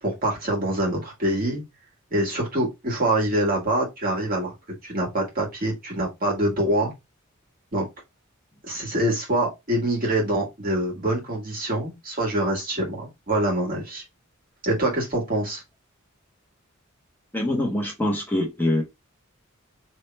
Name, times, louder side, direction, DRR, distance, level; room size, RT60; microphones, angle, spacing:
voice 1, 0.0-1.6 2.1-4.5 4.8-6.9 7.7-7.8 8.7-14.0 14.6-15.6, right 1 dB, 45° right, 2.0 m, -25 dB
voice 2, 17.3-18.8, left 1 dB, 10° left, 1.0 m, -24 dB
3.3 x 2.8 x 4.3 m
head